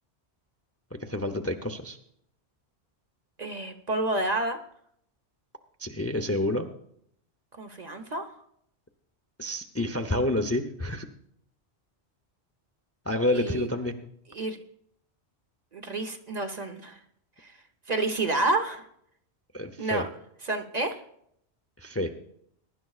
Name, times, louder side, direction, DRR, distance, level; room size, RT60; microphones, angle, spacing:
voice 1, 1.0-2.0 5.8-6.7 9.4-11.1 13.1-13.9 19.5-20.1 21.8-22.2, left 1 dB, 20° left, 6 dB, 0.5 m, -28 dB
voice 2, 3.4-4.6 7.5-8.3 13.3-13.7 14.3-14.6 15.7-17.0 17.4-17.5 17.9-18.8 19.8-20.1 20.5-21.0, right 2 dB, 40° right, 5 dB, 0.9 m, -29 dB
22.0 x 11.0 x 2.4 m, 0.72 s
omnidirectional pair, 1.1 m